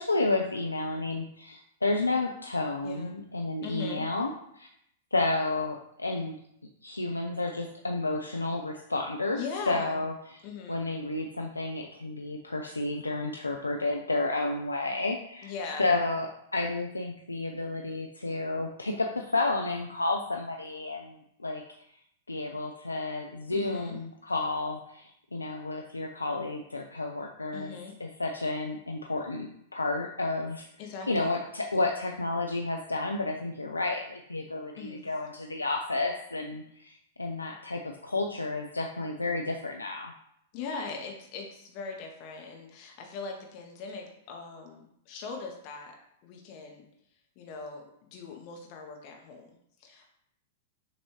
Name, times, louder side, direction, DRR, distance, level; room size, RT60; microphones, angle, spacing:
voice 1, 0.0-4.7 5.1-6.3 6.8-10.1 10.7-15.5 15.8-21.6 22.3-30.7 31.1-40.1, left 2 dB, 80° left, 2 dB, 0.3 m, -31 dB
voice 2, 3.6-4.0 9.3-10.0 10.4-10.8 15.4-15.9 23.5-24.0 27.5-27.9 30.8-31.4 34.8-35.0 40.5-45.9 46.2-46.9 47.4-47.8 48.1-49.5 49.8-50.1, left 4 dB, 40° left, 1 dB, 0.8 m, -40 dB
6.5 x 2.6 x 3.1 m, 0.73 s
figure-of-eight pair, 100°, 0 cm